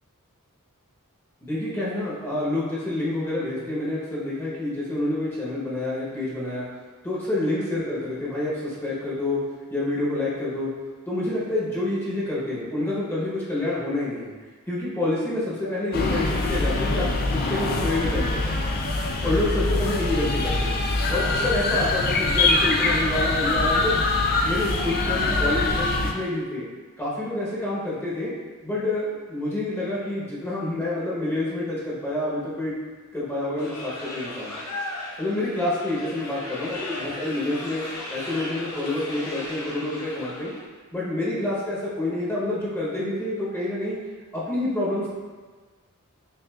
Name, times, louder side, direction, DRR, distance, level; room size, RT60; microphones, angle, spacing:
voice 1, 1.4-6.6 7.0-9.4 9.7-10.7 11.0-14.3 14.7-18.6 19.2-20.8 21.1-23.9 24.4-26.6 27.0-28.3 28.6-32.7 33.1-34.5 35.2-37.8 38.1-40.5 40.9-44.0 44.3-45.1, left 1 dB, 10° left, -8 dB, 0.9 m, -28 dB
sound 1, 15.6-15.8 16.7-16.9 17.8-17.9 18.8-19.0 19.9-20.1 21.0-21.2 22.1-22.2 23.1-23.3, right 1 dB, 45° right, 0.8 m, -39 dB
sound 2, 15.9-26.1, left 2 dB, 45° left, 0.4 m, -23 dB
sound 3, 33.6-40.6, left 1 dB, 80° left, 0.8 m, -36 dB
6.0 x 2.5 x 2.3 m, 1.4 s
head